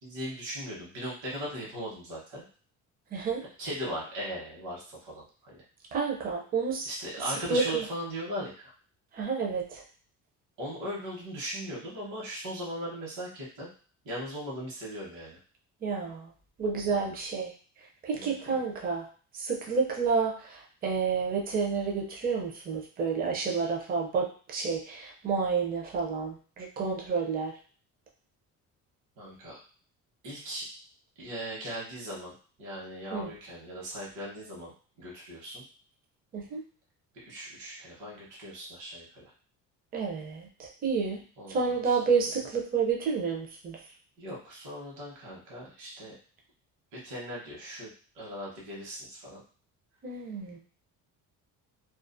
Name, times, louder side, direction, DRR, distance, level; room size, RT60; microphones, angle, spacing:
voice 1, 0.0-2.4 3.6-5.6 6.8-8.7 10.6-13.7 14.0-15.4 16.9-17.1 18.1-18.6 29.2-29.6 30.2-30.7 31.2-32.3 32.6-34.7 35.0-35.6 37.1-39.3 41.4-42.0 44.2-46.1 46.9-47.9 48.1-49.4, equal, 70° right, -5 dB, 1.0 m, -38 dB
voice 2, 3.1-3.4 5.9-6.9 7.5-7.8 9.1-9.8 15.8-16.3 16.6-17.5 18.0-19.0 19.3-27.5 33.1-33.3 36.3-36.6 39.9-41.2 41.5-43.8 50.0-50.6, right 5 dB, 30° right, 0 dB, 0.5 m, -30 dB
2.4 x 2.3 x 2.5 m, 0.41 s
cardioid pair, 170°, 32 cm